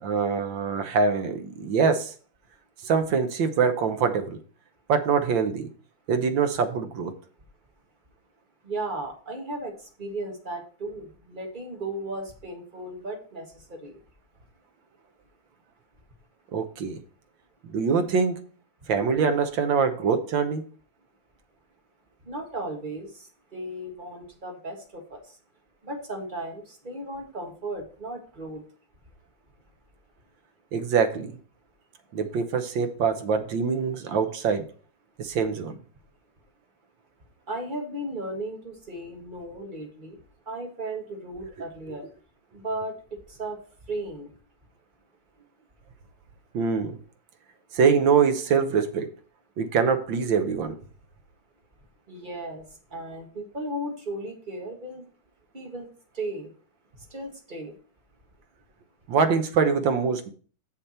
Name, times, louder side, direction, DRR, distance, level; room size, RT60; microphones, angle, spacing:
voice 1, 0.0-2.1 2.8-4.4 4.9-5.7 6.1-7.1 16.5-17.0 17.7-18.4 18.9-20.6 30.7-31.4 32.1-34.7 35.2-35.8 46.5-47.0 47.7-49.1 49.6-50.8 59.1-60.3, right 6 dB, 65° right, 1.5 m, -24 dB
voice 2, 8.6-9.7 10.0-14.0 22.3-23.1 23.5-25.2 25.8-28.6 37.5-40.2 40.5-42.1 42.5-42.9 43.3-43.6 43.9-44.3 52.1-52.6 52.9-55.0 55.5-55.9 56.1-56.5 57.1-57.7, right 1 dB, 25° right, 1.6 m, -35 dB
7.0 x 6.8 x 4.3 m
omnidirectional pair, 2.4 m